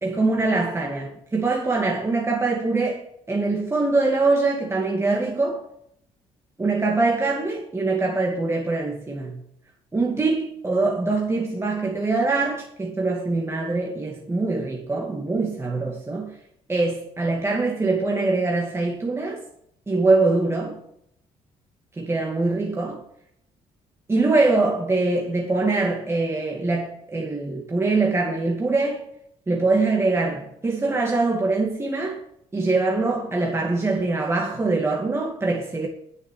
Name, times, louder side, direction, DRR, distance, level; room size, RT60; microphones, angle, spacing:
voice 1, 0.0-5.6 6.6-9.4 9.9-16.4 16.7-19.4 19.9-20.8 22.0-23.0 24.1-29.1 29.5-32.2 32.5-35.9, right 3 dB, 20° right, 2.4 m, -23 dB
9.8 x 8.3 x 9.4 m
cardioid pair, 100°, 13 cm